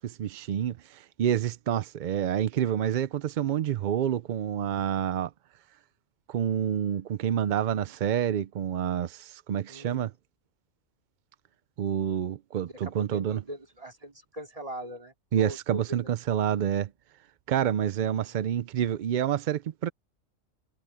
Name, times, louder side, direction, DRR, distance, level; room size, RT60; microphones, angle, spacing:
voice 1, 0.0-5.3 6.3-10.1 11.8-13.4 15.3-16.9 17.5-19.9, right 10 dB, 70° right, 0.4 m, -28 dB
voice 2, 9.7-10.1 12.6-16.1 18.1-18.4, equal, 25° right, 3.9 m, -41 dB
omnidirectional pair, 1.4 m